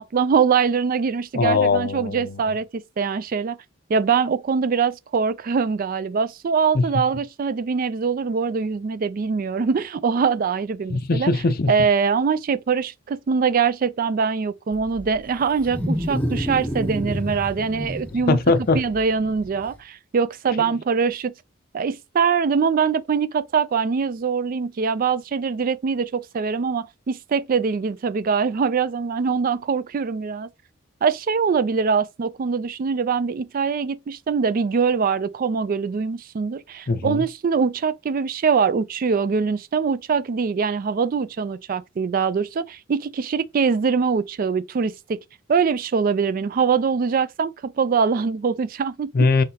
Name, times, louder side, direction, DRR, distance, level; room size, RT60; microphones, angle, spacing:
voice 1, 0.0-3.6 3.9-11.3 11.7-18.4 18.7-21.3 21.7-30.5 31.0-45.2 45.5-49.1, right 5 dB, 45° right, 0.3 m, -23 dB
voice 2, 1.3-2.4 6.7-6.8 10.9-11.7 18.3-18.8 36.9-37.2 49.1-49.4, left 3 dB, 45° left, 0.5 m, -20 dB
Wild animals, 14.7-19.7, equal, 5° left, 0.8 m, -29 dB
5.6 x 3.2 x 2.8 m
head